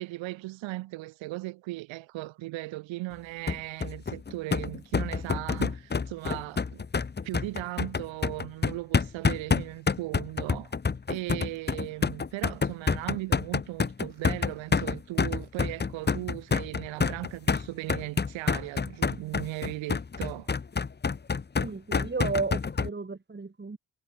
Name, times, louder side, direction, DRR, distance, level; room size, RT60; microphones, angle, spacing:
voice 1, 0.0-6.8 7.2-10.7 11.1-20.5, right 18 dB, 85° right, 4.9 m, -37 dB
sound 1, 3.5-22.9, left 5 dB, 20° left, 0.9 m, -28 dB
voice 2, 21.6-23.8, right 4 dB, 25° right, 2.8 m, -33 dB
supercardioid pair, 55°, 45 cm